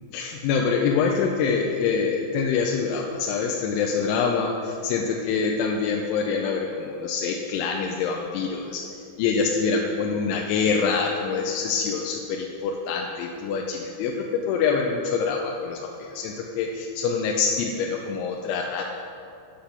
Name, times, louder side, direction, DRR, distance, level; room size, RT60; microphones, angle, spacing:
voice 1, 0.1-18.8, left 5 dB, 90° left, 0 dB, 3.0 m, -25 dB
8.5 x 6.6 x 5.8 m, 2.5 s
omnidirectional pair, 5.4 m